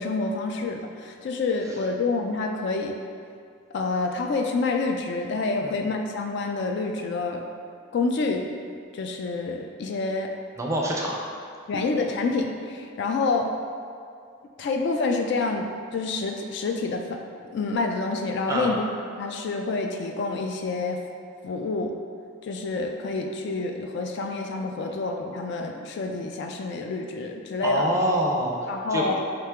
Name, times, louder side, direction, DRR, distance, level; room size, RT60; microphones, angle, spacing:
voice 1, 0.0-3.0 3.7-7.4 7.9-8.5 8.9-10.3 11.7-13.5 14.6-17.2 17.5-18.8 19.2-21.0 21.4-22.0 22.4-27.9 28.7-29.2, left 3 dB, 55° left, 3 dB, 0.3 m, -28 dB
voice 2, 10.6-11.2 18.5-18.7 27.6-29.1, right 1 dB, 15° right, -2 dB, 0.4 m, -26 dB
4.4 x 2.8 x 3.5 m, 2.3 s
head